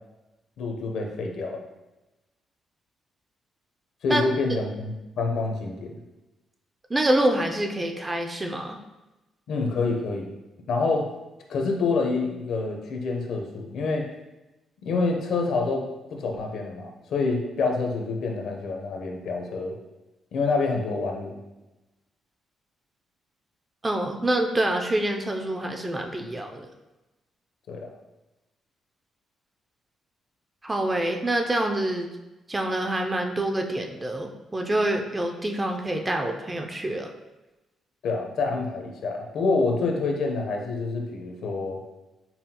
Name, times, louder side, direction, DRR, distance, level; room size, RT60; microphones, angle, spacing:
voice 1, 0.6-1.6 4.0-6.0 9.5-10.3 10.7-11.1 11.5-14.1 14.8-19.8 20.3-21.4 27.7-27.9 38.0-41.8, left 3 dB, 70° left, 2 dB, 0.6 m, -27 dB
voice 2, 6.9-8.8 23.8-26.7 30.6-32.1 32.5-37.1, right 1 dB, 15° right, 4 dB, 0.3 m, -26 dB
5.5 x 2.2 x 2.8 m, 1.0 s
cardioid pair, 145°, 0 cm